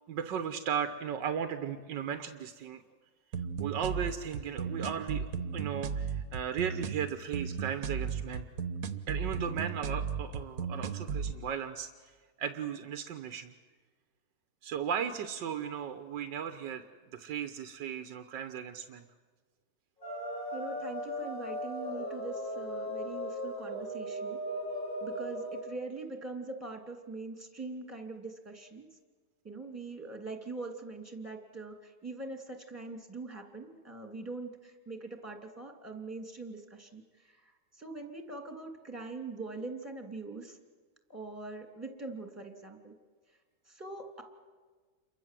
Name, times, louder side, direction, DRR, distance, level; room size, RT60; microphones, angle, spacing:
voice 1, 0.1-2.8 3.6-8.5 9.1-12.1 12.4-13.5 14.6-16.8 17.1-19.0, right 8 dB, 90° right, 8 dB, 1.7 m, -36 dB
sound 1, 3.3-11.3, right 6 dB, 60° right, 1.6 m, -35 dB
sound 2, 20.0-25.6, equal, 25° left, 8.4 m, -37 dB
voice 2, 20.5-24.4 25.0-28.9 29.4-37.4 37.8-40.6 41.1-42.9 43.7-44.2, right 3 dB, 10° right, 3 dB, 2.8 m, -42 dB
29.0 x 23.5 x 7.6 m, 1.4 s
omnidirectional pair, 1.9 m